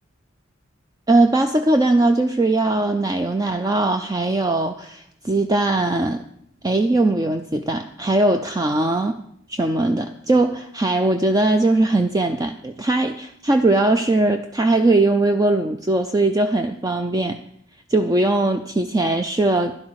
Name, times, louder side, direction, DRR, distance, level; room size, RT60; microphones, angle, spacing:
voice 1, 1.1-6.2 6.6-9.2 9.5-17.4 17.9-19.8, right 2 dB, 20° right, 7 dB, 0.4 m, -20 dB
12.0 x 11.5 x 4.8 m, 0.72 s
head